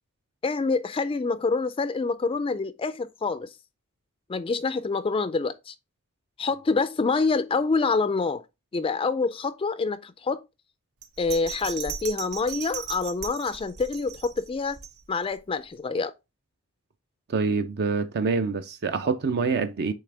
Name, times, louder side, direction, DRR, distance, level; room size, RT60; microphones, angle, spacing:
voice 1, 0.4-3.5 4.3-5.7 6.4-8.4 8.7-10.4 11.2-14.8 15.1-16.1, left 4 dB, 25° left, 0.3 m, -26 dB
Bell, 11.0-15.4 15.8-15.9, right 8 dB, 75° right, 0.9 m, -38 dB
voice 2, 17.3-19.9, right 4 dB, 50° right, 0.5 m, -26 dB
8.5 x 3.4 x 3.3 m
head